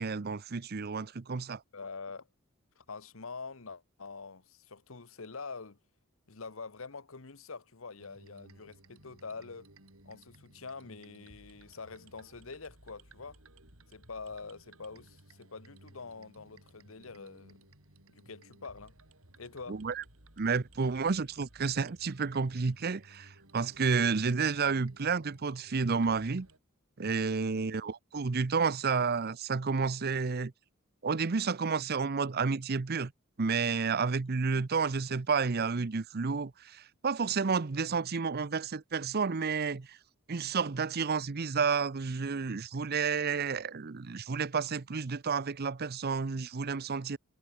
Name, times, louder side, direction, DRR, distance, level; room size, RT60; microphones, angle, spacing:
voice 1, 0.0-1.6 19.7-20.0 20.4-26.5 27.0-30.5 31.0-33.1 33.4-40.0 40.3-47.2, right 5 dB, 50° right, 0.7 m, -31 dB
voice 2, 1.7-2.3 2.8-5.8 6.3-9.7 10.0-13.4 13.9-17.6 18.1-18.9 19.4-19.8 27.3-27.7, left 4 dB, 70° left, 1.2 m, -45 dB
sound 1, 8.0-26.6, right 2 dB, 80° right, 6.4 m, -58 dB
head